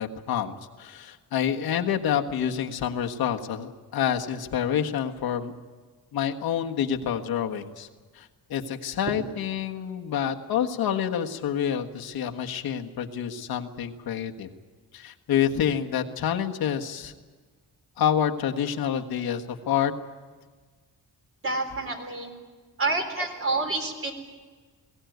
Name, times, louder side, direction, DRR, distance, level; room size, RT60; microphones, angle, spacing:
voice 1, 0.0-5.5 6.1-7.9 8.1-14.5 14.9-17.1 18.0-19.9, left 9 dB, 85° left, 3 dB, 1.5 m, -28 dB
voice 2, 21.4-22.3 22.8-24.1, right 3 dB, 35° right, 4 dB, 3.9 m, -28 dB
21.5 x 17.0 x 9.4 m, 1.4 s
cardioid pair, 115°, 36 cm